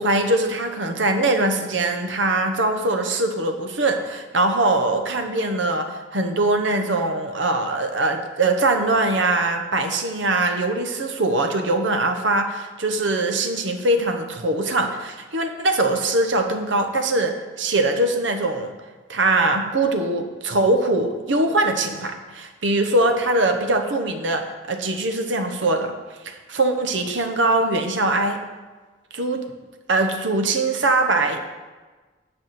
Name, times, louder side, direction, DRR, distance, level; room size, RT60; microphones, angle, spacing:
voice 1, 0.0-18.7 19.1-25.9 26.2-28.4 29.1-29.4 29.9-31.4, right 2 dB, 80° right, 5 dB, 1.1 m, -22 dB
9.7 x 4.8 x 7.7 m, 1.3 s
head